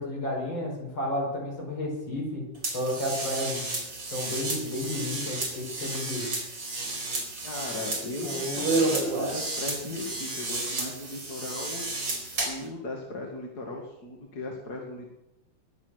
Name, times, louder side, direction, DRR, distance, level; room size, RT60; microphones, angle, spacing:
voice 1, 0.0-3.6 4.1-6.3, left 1 dB, 75° left, -1 dB, 5.9 m, -32 dB
sound 1, 2.6-12.7, right 2 dB, 80° right, 4.7 m, -31 dB
voice 2, 7.4-11.9 12.2-15.1, left 2 dB, 55° left, 0 dB, 2.6 m, -38 dB
21.5 x 8.8 x 6.4 m, 0.89 s
omnidirectional pair, 2.1 m